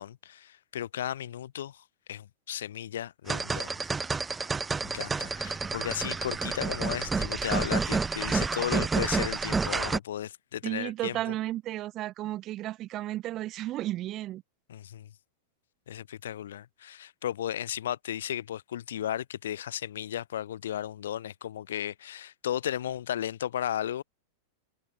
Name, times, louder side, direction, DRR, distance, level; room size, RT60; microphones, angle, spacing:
voice 1, 0.0-3.7 4.4-4.5 4.8-11.2 14.7-15.1 15.9-24.0, left 11 dB, 60° left, 5.6 m, -35 dB
sound 1, 3.3-10.0, right 4 dB, 15° right, 2.0 m, -29 dB
voice 2, 10.6-14.4, right 15 dB, 35° right, 3.0 m, -33 dB
figure-of-eight pair, 90°, 0 cm